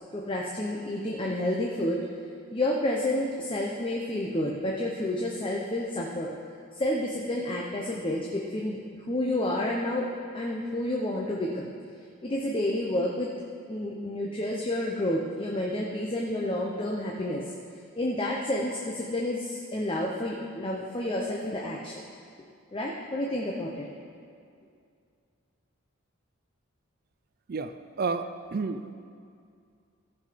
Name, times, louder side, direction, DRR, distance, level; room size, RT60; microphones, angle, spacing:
voice 1, 0.1-2.0 2.5-6.3 6.7-8.8 9.1-10.1 10.3-11.7 12.2-13.3 13.7-17.4 18.0-22.0 22.7-23.9, left 1 dB, 25° left, -2 dB, 0.7 m, -30 dB
voice 2, 27.5-28.9, right 4 dB, 45° right, 9 dB, 0.4 m, -31 dB
14.5 x 5.8 x 5.1 m, 2.3 s
head